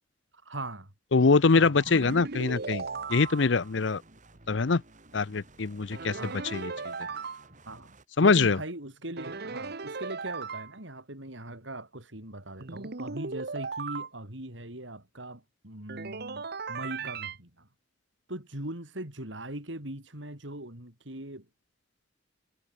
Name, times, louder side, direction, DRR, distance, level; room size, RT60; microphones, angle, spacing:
voice 1, 0.4-0.9 1.6-1.8 6.2-6.5 7.7-7.9 8.2-17.7 18.3-21.5, right 1 dB, 75° right, 6.4 m, -40 dB
voice 2, 1.1-2.8 3.1-4.0 4.5-4.8 5.1-6.9 8.2-8.6, left 4 dB, 70° left, 0.7 m, -24 dB
sound 1, 1.8-3.7 5.9-7.5 9.2-10.7 12.6-14.1 15.9-17.4, right 4 dB, 60° right, 1.3 m, -37 dB
sound 2, 1.9-8.0, right 2 dB, 40° right, 4.1 m, -56 dB
head